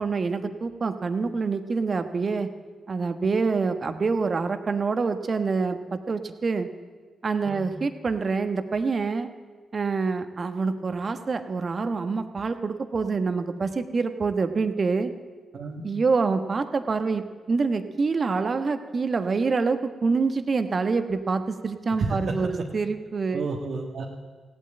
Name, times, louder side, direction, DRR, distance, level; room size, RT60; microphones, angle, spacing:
voice 1, 0.0-2.5 2.9-6.7 7.2-9.3 9.7-15.1 15.8-23.5, right 4 dB, 50° right, 9 dB, 1.2 m, -26 dB
voice 2, 22.0-22.5 23.3-24.0, right 3 dB, 65° right, 0 dB, 1.5 m, -31 dB
16.0 x 8.6 x 8.9 m, 1.5 s
hypercardioid pair, 40°, 0 cm